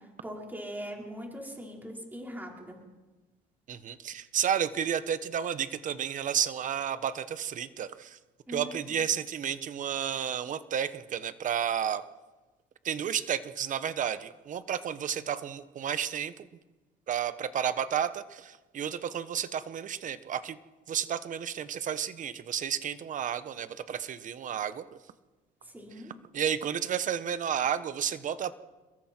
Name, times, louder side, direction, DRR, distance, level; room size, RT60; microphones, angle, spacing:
voice 1, 0.2-2.8 8.5-8.8 25.7-26.1, equal, 10° right, 0 dB, 4.7 m, -41 dB
voice 2, 3.7-8.2 8.5-12.0 12.8-16.3 17.1-20.6 20.9-24.8 26.3-28.5, right 9 dB, 50° right, 13 dB, 1.1 m, -32 dB
28.0 x 22.0 x 4.5 m, 1.2 s
cardioid pair, 110°, 17 cm